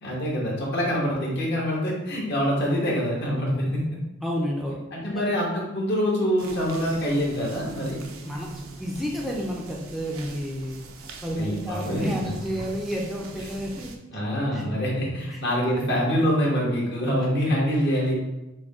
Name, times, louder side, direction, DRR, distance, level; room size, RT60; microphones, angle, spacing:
voice 1, 0.0-3.8 4.9-8.0 11.4-12.3 14.1-18.1, equal, 55° left, -3 dB, 1.4 m, -25 dB
voice 2, 4.2-4.8 5.1-5.2 8.2-10.8 11.2-13.9 14.5-14.6 15.3-15.4, equal, ahead, -3 dB, 0.5 m, -30 dB
sound 1, 6.4-14.0, right 3 dB, 85° right, 0.6 m, -42 dB
6.2 x 2.2 x 3.6 m, 0.99 s
head